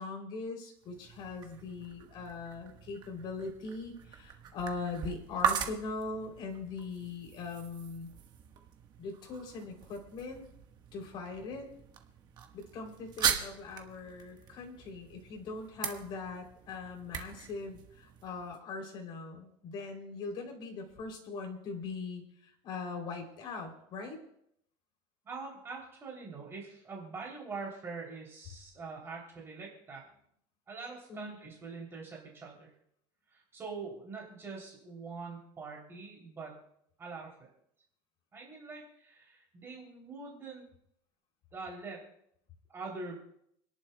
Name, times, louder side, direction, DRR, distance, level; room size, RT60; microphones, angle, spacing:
voice 1, 0.0-8.1 9.0-10.4 10.9-11.7 12.5-24.2 31.1-31.4, left 4 dB, 45° left, 1 dB, 3.0 m, -41 dB
sound 1, 0.8-18.6, right 8 dB, 35° right, 1.3 m, -40 dB
voice 2, 25.2-30.0 30.7-32.7 33.3-36.6 37.0-37.3 38.3-40.6 41.5-42.0 42.7-43.2, right 4 dB, 20° right, -3 dB, 3.0 m, -44 dB
29.0 x 11.0 x 2.2 m, 0.71 s
cardioid pair, 155°, 12 cm